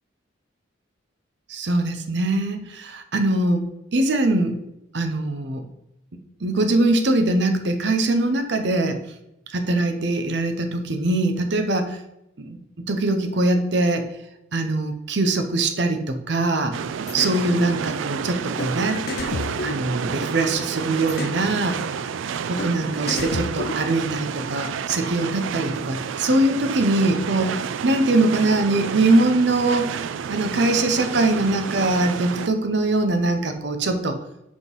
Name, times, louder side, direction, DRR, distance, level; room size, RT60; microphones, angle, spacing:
voice 1, 1.5-4.6 4.9-5.7 6.4-8.9 9.5-12.0 12.4-12.6 12.9-14.0 14.5-16.7 17.1-19.0 19.6-22.0 22.5-34.2, right 2 dB, 60° right, 7 dB, 0.7 m, -22 dB
sound 1, 16.7-32.5, right 7 dB, 75° right, 0.3 m, -30 dB
sound 2, 17.1-17.4 18.6-18.7 19.1-20.5 21.1-21.4 22.6-22.7 23.1-24.2, left 4 dB, 50° left, 0.4 m, -31 dB
6.1 x 3.7 x 5.3 m, 0.86 s
head